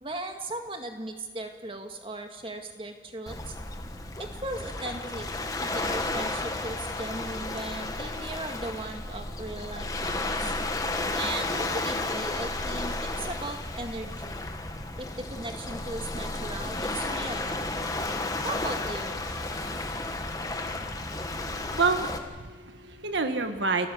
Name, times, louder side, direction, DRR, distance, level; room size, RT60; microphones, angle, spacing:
voice 1, 0.0-3.6 4.2-5.3 5.6-10.5 11.1-14.4 15.0-17.5 18.4-19.2, right 2 dB, 30° right, 4 dB, 2.0 m, -37 dB
Waves surf, 3.3-22.2, left 2 dB, 20° left, 1.5 m, -33 dB
voice 2, 21.4-23.9, right 4 dB, 80° right, 7 dB, 1.6 m, -29 dB
29.0 x 15.0 x 8.1 m, 1.4 s
head